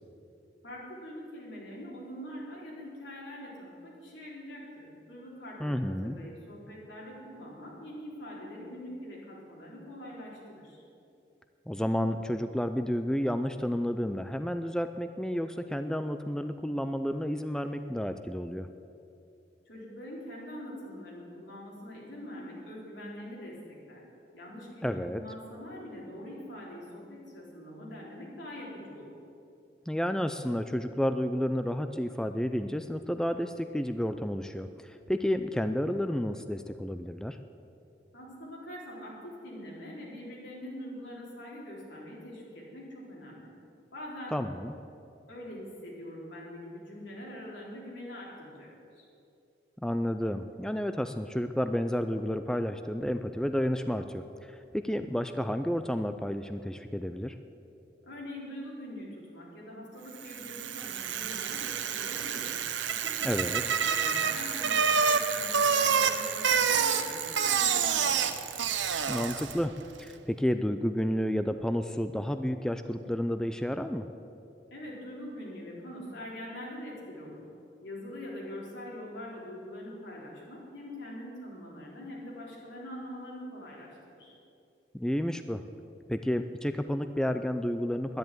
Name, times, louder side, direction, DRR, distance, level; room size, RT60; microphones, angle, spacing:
voice 1, 0.6-10.8 19.7-24.0 24.3-29.1 38.1-43.5 43.9-44.4 45.3-48.7 49.0-49.1 58.0-62.5 62.9-68.5 74.7-77.4 77.8-84.3, left 1 dB, 85° left, -4 dB, 4.0 m, -43 dB
voice 2, 5.6-6.2 11.7-18.7 24.8-25.2 29.9-37.4 44.3-44.7 49.8-57.3 63.2-63.6 69.1-69.7 70.0-74.1 84.9-85.6 86.1-88.2, equal, 5° left, 8 dB, 0.3 m, -31 dB
Bicycle, 60.2-69.7, right 6 dB, 85° right, 0.8 m, -28 dB
10.5 x 10.5 x 9.2 m, 2.7 s
head